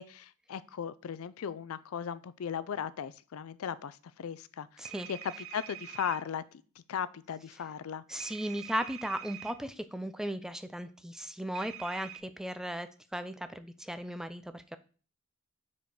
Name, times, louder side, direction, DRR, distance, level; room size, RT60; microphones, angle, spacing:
voice 1, 0.0-4.7 5.1-6.4 6.9-8.0, left 8 dB, 75° left, 16 dB, 0.4 m, -37 dB
voice 2, 4.8-5.1 8.1-14.8, equal, 5° right, 11 dB, 0.4 m, -36 dB
sound 1, 4.9-6.2 8.2-9.5 11.6-12.2, right 11 dB, 75° right, 0.7 m, -45 dB
5.0 x 4.7 x 5.1 m, 0.38 s
head